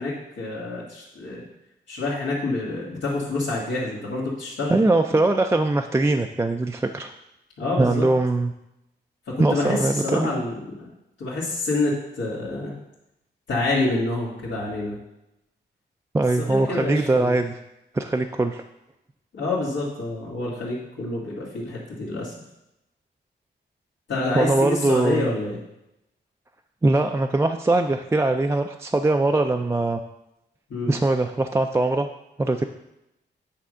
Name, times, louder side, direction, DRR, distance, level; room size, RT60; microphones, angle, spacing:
voice 1, 0.0-1.4 1.9-4.9 7.6-8.1 9.3-10.9 11.2-12.7 13.5-15.0 16.4-17.4 19.3-22.3 24.1-25.6 30.7-30.9, left 2 dB, 85° left, -8 dB, 2.0 m, -27 dB
voice 2, 4.7-7.1 7.8-8.5 9.4-10.3 16.1-17.5 17.9-18.6 24.3-25.3 26.8-30.0 30.9-32.1 32.4-32.6, right 2 dB, 15° right, 4 dB, 0.3 m, -21 dB
8.4 x 3.5 x 6.2 m, 0.89 s
wide cardioid pair, 115°, 19 cm